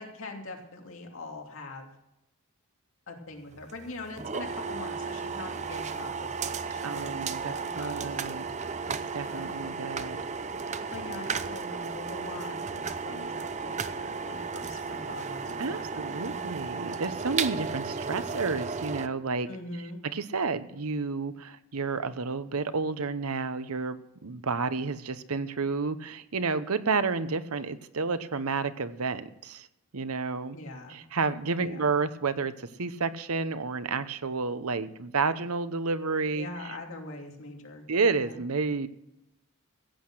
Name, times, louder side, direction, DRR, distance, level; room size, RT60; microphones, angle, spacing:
voice 1, 0.0-1.9 3.1-8.5 9.3-9.8 10.9-16.4 19.5-20.0 30.5-31.0 31.6-31.8 36.3-37.9 38.2-38.4, left 2 dB, 60° left, 1 dB, 2.8 m, -43 dB
sound 1, 3.5-19.1, right 5 dB, 30° right, 0.6 m, -34 dB
voice 2, 6.8-8.5 8.9-10.2 15.6-19.5 20.1-29.7 29.9-30.6 30.9-36.7 37.9-38.9, right 4 dB, 80° right, 13 dB, 0.9 m, -31 dB
15.5 x 8.7 x 6.2 m, 0.85 s
head